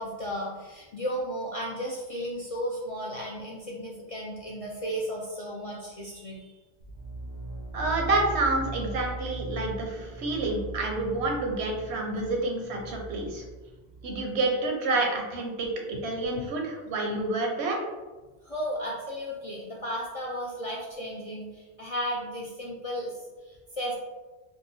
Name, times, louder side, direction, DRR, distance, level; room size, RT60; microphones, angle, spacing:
voice 1, 0.0-6.5 18.4-23.9, equal, 50° left, -4 dB, 0.4 m, -34 dB
sound 1, 6.8-14.4, right 2 dB, 55° right, 0.6 m, -39 dB
voice 2, 7.7-13.4 14.0-17.8, right 2 dB, 80° right, 1 dB, 1.0 m, -28 dB
3.9 x 2.3 x 2.6 m, 1.2 s
omnidirectional pair, 1.1 m